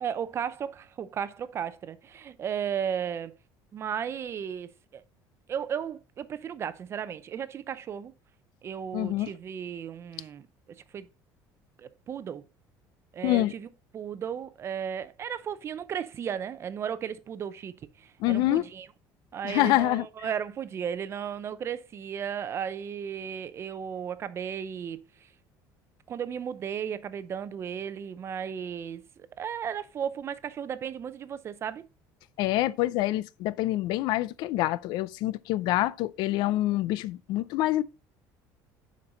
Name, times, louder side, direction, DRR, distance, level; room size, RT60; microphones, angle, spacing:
voice 1, 0.0-3.3 3.7-5.0 5.5-8.1 8.6-10.5 10.9-11.1 11.8-12.4 13.1-13.7 13.9-18.9 19.3-25.0 26.1-31.9, right 8 dB, 35° right, 0.6 m, -35 dB
voice 2, 8.9-9.3 13.2-13.5 18.2-18.7 19.4-20.1 32.4-37.8, left 16 dB, 70° left, 0.5 m, -26 dB
6.9 x 5.2 x 4.0 m
cardioid pair, 135°, 8 cm